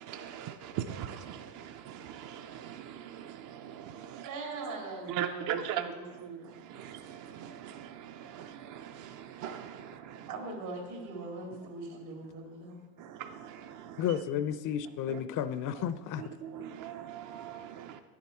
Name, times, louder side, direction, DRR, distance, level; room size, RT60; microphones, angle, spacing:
voice 1, 0.0-10.4 11.6-11.7 13.0-14.2 15.1-15.2 15.7-15.9 16.1-18.0, right 9 dB, 45° right, 0.5 m, -41 dB
voice 2, 4.3-5.4 5.7-5.9 6.3-6.4 10.3-12.8, right 3 dB, 80° right, 2.9 m, -40 dB
voice 3, 14.0-16.2, left 9 dB, 45° left, 0.5 m, -32 dB
10.5 x 7.2 x 4.4 m
supercardioid pair, 110°, 44 cm